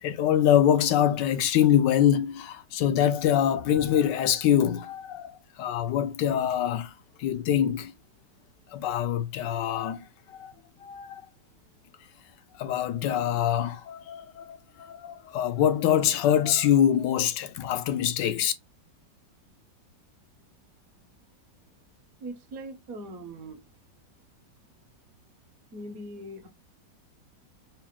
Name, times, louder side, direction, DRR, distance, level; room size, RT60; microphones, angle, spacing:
voice 1, 0.0-6.9 7.2-7.9 8.7-10.5 10.8-11.2 12.5-18.5, left 10 dB, 75° left, 1.2 m, -24 dB
voice 2, 22.2-23.7 25.7-26.5, right 1 dB, 60° right, 1.1 m, -40 dB
4.5 x 2.0 x 3.6 m
omnidirectional pair, 2.0 m